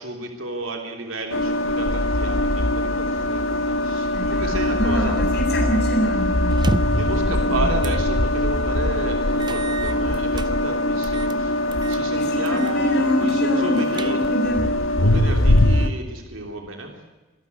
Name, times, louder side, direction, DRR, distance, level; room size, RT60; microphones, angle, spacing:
voice 1, 0.0-5.1 7.0-11.5 11.9-14.2 15.0-17.0, right 2 dB, 75° right, 3 dB, 3.2 m, -32 dB
sound 1, 1.3-15.9, left 1 dB, 80° left, 1.2 m, -22 dB
voice 2, 4.1-7.7 12.1-14.7, left 1 dB, 55° left, 0 dB, 7.3 m, -25 dB
sound 2, 6.5-7.1 7.8-8.0 8.4-8.5 9.4-10.5 11.0-11.4 11.7-12.0 12.5-12.8 13.1-13.2 13.7-14.5, right 2 dB, 20° right, 0.6 m, -30 dB
26.5 x 12.0 x 9.5 m, 1.2 s
head